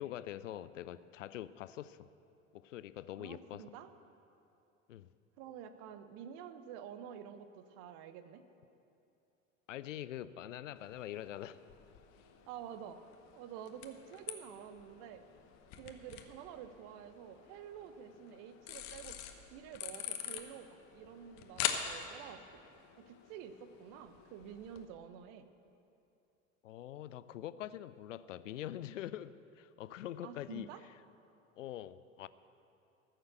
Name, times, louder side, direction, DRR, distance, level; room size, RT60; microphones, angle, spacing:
voice 1, 0.0-2.0 2.5-3.6 4.9-5.1 9.7-11.6 26.6-30.7 31.6-32.3, left 12 dB, 70° left, 16 dB, 0.5 m, -44 dB
voice 2, 3.2-3.9 5.4-8.4 12.5-13.0 13.4-15.2 15.8-19.2 19.5-22.6 23.0-25.5 30.2-30.8, right 8 dB, 45° right, 11 dB, 0.8 m, -49 dB
sound 1, 10.8-24.9, left 9 dB, 45° left, 1.0 m, -45 dB
14.0 x 6.7 x 7.8 m, 2.7 s
figure-of-eight pair, 75°, 40 cm